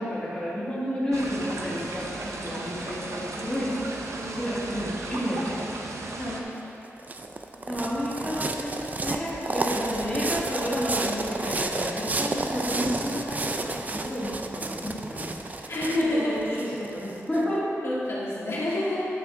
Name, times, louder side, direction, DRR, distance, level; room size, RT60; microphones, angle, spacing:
voice 1, 0.0-3.8 4.1-5.5 7.7-15.3 16.1-17.7, equal, 15° left, -9 dB, 2.0 m, -31 dB
sound 1, 1.1-6.4, right 2 dB, 70° right, 0.7 m, -35 dB
sound 2, 6.6-17.4, right 2 dB, 30° right, 0.4 m, -31 dB
voice 2, 15.7-16.6 17.8-19.1, left 1 dB, 60° left, -8 dB, 1.8 m, -28 dB
10.5 x 6.0 x 3.8 m, 2.8 s
wide cardioid pair, 145°, 5 cm